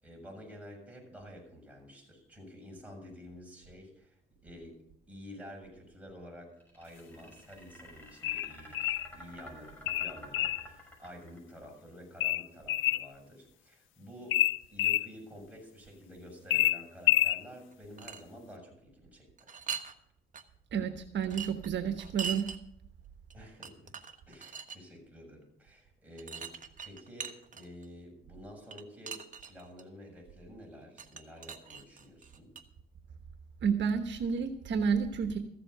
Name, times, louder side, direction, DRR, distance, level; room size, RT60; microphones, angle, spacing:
voice 1, 0.0-14.4 14.7-19.5 23.3-23.9 24.3-26.6 26.8-32.5, equal, 5° right, 0 dB, 7.0 m, -50 dB
sound 1, 6.6-11.6, equal, 10° left, 5.9 m, -50 dB
sound 2, 8.2-9.1 9.9-10.7 12.2-13.1 14.3-15.1 16.5-17.4, left 14 dB, 85° left, 0.5 m, -27 dB
sound 3, 17.7-18.2 19.4-19.9 20.3-20.4 21.2-22.6 23.3-23.4 23.6-24.8 26.2-27.9 28.7-29.8 31.0-32.6, right 6 dB, 40° right, 1.2 m, -41 dB
voice 2, 20.7-22.4 33.6-35.4, right 6 dB, 65° right, 7 dB, 1.1 m, -30 dB
14.5 x 7.5 x 6.8 m, 0.72 s
cardioid pair, 90°, 20 cm